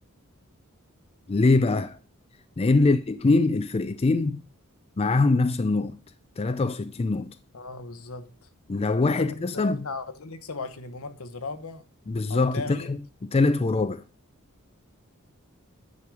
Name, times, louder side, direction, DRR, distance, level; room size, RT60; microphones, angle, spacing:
voice 1, 1.3-2.0 2.6-4.4 5.0-6.0 6.4-7.3 8.7-9.9 12.1-14.0, left 3 dB, 30° left, 0.4 m, -23 dB
voice 2, 7.5-8.5 9.2-11.8 12.3-12.9, left 3 dB, 75° left, 1.0 m, -37 dB
9.6 x 5.3 x 4.7 m
head